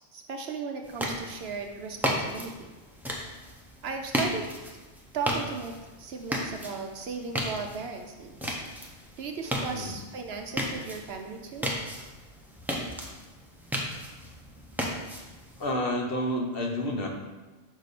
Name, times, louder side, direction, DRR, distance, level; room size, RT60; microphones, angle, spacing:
voice 1, 0.0-2.8 3.8-4.5 5.1-8.6 9.2-11.7, right 5 dB, 65° right, 4 dB, 0.8 m, -36 dB
sound 1, 0.8-15.7, equal, ahead, 0.6 m, -35 dB
voice 2, 15.6-17.1, left 1 dB, 55° left, 1 dB, 1.0 m, -29 dB
6.4 x 4.9 x 4.1 m, 1.2 s
omnidirectional pair, 1.3 m